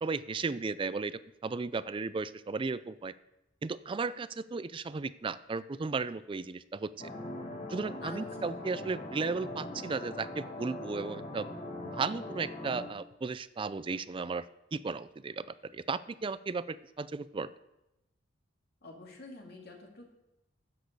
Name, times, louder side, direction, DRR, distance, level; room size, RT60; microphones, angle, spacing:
voice 1, 0.0-3.1 3.6-7.1 7.7-11.5 11.8-14.5 14.7-17.5, right 4 dB, 25° right, 16 dB, 0.4 m, -35 dB
sound 1, 7.0-12.9, left 1 dB, 35° left, 1.6 m, -41 dB
voice 2, 18.8-20.1, left 2 dB, 55° left, 0 dB, 2.3 m, -47 dB
10.0 x 7.4 x 6.6 m, 0.92 s
head